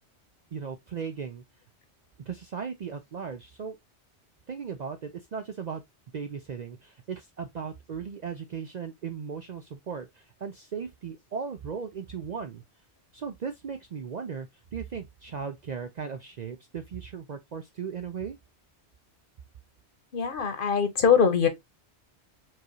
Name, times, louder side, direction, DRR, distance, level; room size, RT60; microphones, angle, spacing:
voice 1, 0.5-1.4 2.3-3.8 4.5-5.8 6.1-12.6 13.1-18.4, right 6 dB, 55° right, 0.5 m, -37 dB
voice 2, 20.1-21.5, left 6 dB, 50° left, 1.0 m, -22 dB
4.7 x 2.6 x 2.9 m
omnidirectional pair, 1.2 m